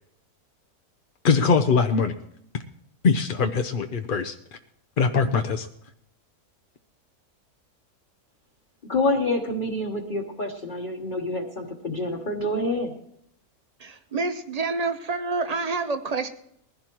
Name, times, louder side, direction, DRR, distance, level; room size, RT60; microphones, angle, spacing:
voice 1, 1.2-2.1 3.0-4.3 5.0-5.7, left 5 dB, 50° left, 7 dB, 0.6 m, -22 dB
voice 2, 8.9-13.0, left 2 dB, 35° left, 0 dB, 1.2 m, -27 dB
voice 3, 13.8-16.3, right 4 dB, 35° right, 8 dB, 0.7 m, -28 dB
21.0 x 15.5 x 3.0 m, 0.73 s
omnidirectional pair, 1.6 m